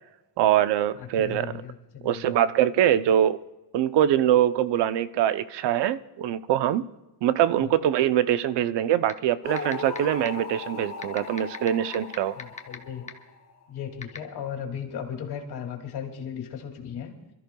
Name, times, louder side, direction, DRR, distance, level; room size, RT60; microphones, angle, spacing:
voice 1, 0.4-1.6 2.0-3.4 3.7-6.9 7.2-12.4, right 11 dB, 85° right, 0.7 m, -23 dB
voice 2, 0.9-2.3 7.5-7.7 12.4-13.1 13.7-17.1, left 8 dB, 70° left, 2.5 m, -36 dB
sound 1, 9.1-9.2 9.6-10.0 10.3-10.4 11.0-12.8 13.1-13.2 14.0-14.2, left 4 dB, 15° left, 0.9 m, -34 dB
sound 2, 9.4-13.7, left 4 dB, 40° left, 1.3 m, -37 dB
27.5 x 13.5 x 2.3 m
cardioid pair, 170°, 41 cm